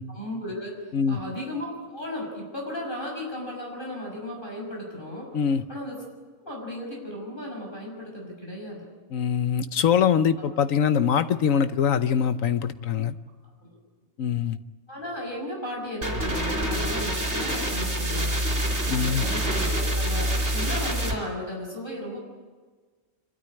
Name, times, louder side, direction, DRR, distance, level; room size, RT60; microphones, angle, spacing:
voice 1, 0.1-5.3 5.7-6.0 6.4-8.8 10.4-10.5 13.6-13.8 14.9-18.4 18.8-22.3, left 1 dB, 35° left, -1 dB, 6.5 m, -35 dB
voice 2, 9.1-13.1 14.2-14.6 18.9-19.3, left 7 dB, 75° left, 12 dB, 1.2 m, -23 dB
sound 1, 16.0-21.1, right 1 dB, 45° right, 4.0 m, -26 dB
26.0 x 13.0 x 9.7 m, 1.4 s
omnidirectional pair, 1.4 m